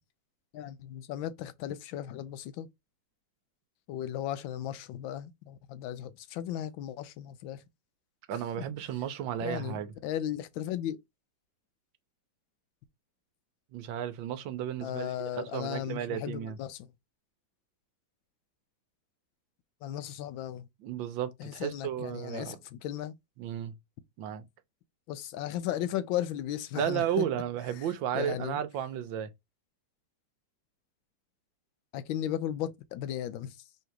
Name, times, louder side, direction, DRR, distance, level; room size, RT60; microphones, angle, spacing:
voice 1, 0.5-2.7 3.9-7.6 9.4-11.0 14.8-16.9 19.8-20.7 21.4-23.1 25.1-27.3 28.1-28.6 31.9-33.6, left 11 dB, 90° left, 1.4 m, -36 dB
voice 2, 8.3-9.9 13.7-16.6 20.8-22.6 23.4-23.7 24.2-24.5 26.7-29.3, right 9 dB, 80° right, 1.4 m, -33 dB
3.9 x 2.7 x 4.5 m
omnidirectional pair, 2.1 m